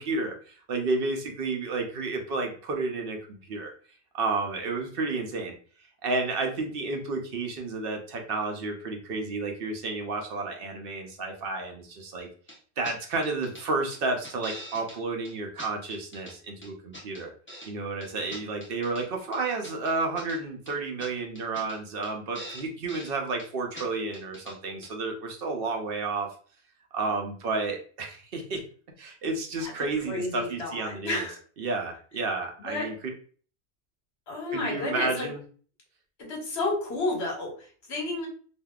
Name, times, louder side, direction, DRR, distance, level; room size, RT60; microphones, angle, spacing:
voice 1, 0.0-3.7 4.1-5.5 6.0-12.3 12.8-17.3 17.6-26.3 26.9-28.6 29.0-31.3 31.6-33.0 34.5-35.4, right 3 dB, 60° right, 2 dB, 0.8 m, -31 dB
sound 1, 12.5-12.6 12.8-13.0 13.2-13.6 13.9-15.0 15.2-15.3 15.6-16.3 16.6-17.7 18.0-19.0 19.3-20.4 20.6-20.7 21.0-21.1 21.3-21.8 22.0-22.1 22.3-23.1 23.4-23.5 23.7-23.9 24.1-24.5 24.8-24.9, equal, 15° left, 0.6 m, -43 dB
voice 2, 30.1-31.4 32.6-32.9 34.3-35.3 36.2-38.3, left 2 dB, 70° left, -1 dB, 1.2 m, -31 dB
3.4 x 2.3 x 2.3 m, 0.43 s
omnidirectional pair, 1.1 m